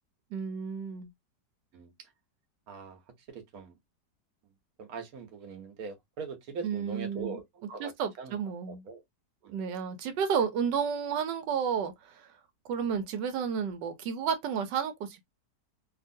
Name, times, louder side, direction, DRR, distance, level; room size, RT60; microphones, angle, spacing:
voice 1, 0.3-1.1 6.6-7.4 7.8-8.8 9.5-12.3 12.7-15.2, right 7 dB, 90° right, 1.3 m, -31 dB
voice 2, 1.7-2.1 2.7-3.0 3.3-3.7 4.8-7.4 7.7-8.4 8.7-9.0 9.4-9.6, right 5 dB, 60° right, 1.2 m, -41 dB
2.9 x 2.7 x 2.6 m
omnidirectional pair, 1.9 m